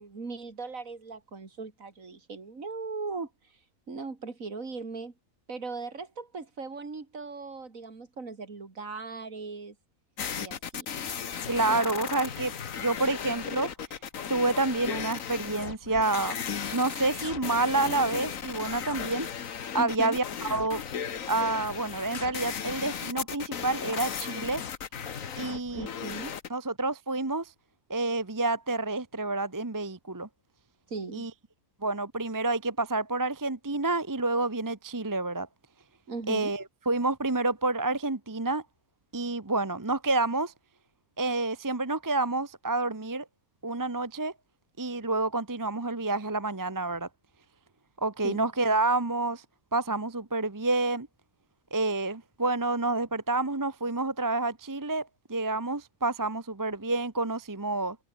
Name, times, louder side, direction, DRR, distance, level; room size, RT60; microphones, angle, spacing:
voice 1, 0.0-3.6 3.9-5.1 5.5-9.7 10.4-10.9 19.8-20.2 25.7-26.3 30.9-31.3 36.1-36.5 48.2-48.5, right 4 dB, 70° right, 3.4 m, -38 dB
sound 1, 10.2-26.5, left 7 dB, 70° left, 1.7 m, -36 dB
voice 2, 11.5-13.7 14.3-16.4 16.7-19.3 19.7-20.8 21.3-24.6 25.4-25.9 26.5-27.5 27.9-30.3 31.1-31.3 31.8-35.5 36.3-38.6 39.1-40.5 41.2-43.2 43.6-44.3 44.8-47.1 48.0-49.4 49.7-51.1 51.7-58.0, right 2 dB, 15° right, 0.9 m, -28 dB
omnidirectional pair, 1.5 m